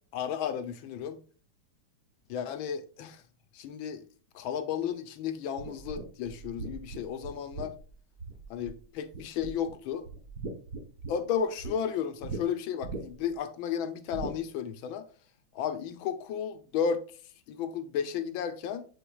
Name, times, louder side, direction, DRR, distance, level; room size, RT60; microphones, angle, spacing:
voice 1, 0.1-1.2 2.3-3.2 3.5-4.0 4.3-7.8 8.5-10.0 11.1-15.1 15.5-17.0 17.5-18.8, left 8 dB, 75° left, 1.5 m, -33 dB
sound 1, 5.6-8.8 9.1-9.7 10.0-11.7 12.2-12.4 12.8-13.3 14.1-14.4, right 4 dB, 50° right, 1.6 m, -39 dB
9.1 x 4.6 x 2.3 m
omnidirectional pair, 2.3 m